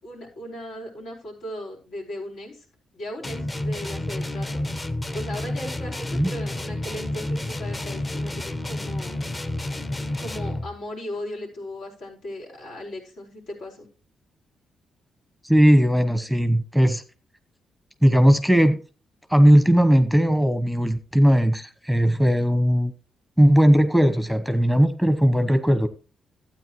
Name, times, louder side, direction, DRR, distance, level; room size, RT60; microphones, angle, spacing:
voice 1, 0.0-2.6 2.9-4.6 5.1-9.3 10.2-13.9, left 1 dB, 80° left, -1 dB, 4.3 m, -37 dB
sound 1, 3.2-10.7, left 1 dB, 25° left, 1.0 m, -30 dB
voice 2, 15.4-17.0 18.0-18.8 19.3-22.9 23.4-25.9, equal, ahead, 9 dB, 1.0 m, -18 dB
12.5 x 8.8 x 3.0 m, 0.34 s
cardioid pair, 75°, 0 cm